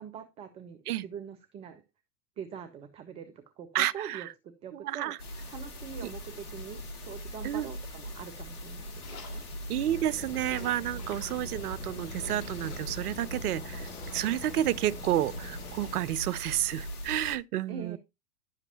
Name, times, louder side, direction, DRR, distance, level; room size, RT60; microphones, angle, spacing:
voice 1, 0.0-1.8 2.4-5.1 5.5-9.5 17.7-18.0, right 7 dB, 15° right, 0.4 m, -43 dB
voice 2, 3.7-4.3 4.7-5.2 6.0-6.1 7.4-7.7 9.7-18.0, right 12 dB, 70° right, 0.6 m, -30 dB
sound 1, 5.2-17.4, equal, 65° left, 2.3 m, -41 dB
sound 2, 9.0-16.0, left 3 dB, 45° left, 3.1 m, -51 dB
sound 3, 9.8-16.1, left 2 dB, 15° left, 2.4 m, -46 dB
10.5 x 7.4 x 2.7 m
hypercardioid pair, 105°, 48 cm